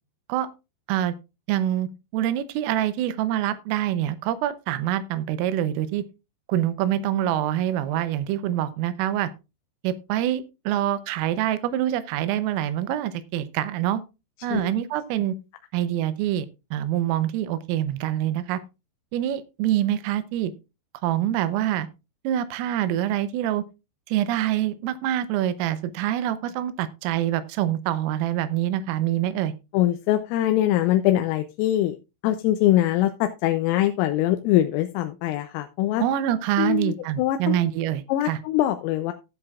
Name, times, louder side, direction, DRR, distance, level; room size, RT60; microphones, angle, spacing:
voice 1, 1.5-6.0 6.5-9.3 9.8-14.0 14.4-15.3 15.7-18.6 19.1-20.5 21.0-21.9 22.2-23.6 24.1-29.5 36.0-38.4, right 12 dB, 85° right, 14 dB, 3.4 m, -25 dB
voice 2, 29.7-32.0 32.2-36.0 36.6-37.6 38.1-39.1, left 13 dB, 85° left, 8 dB, 3.3 m, -23 dB
15.5 x 7.7 x 2.4 m, 0.27 s
omnidirectional pair, 5.8 m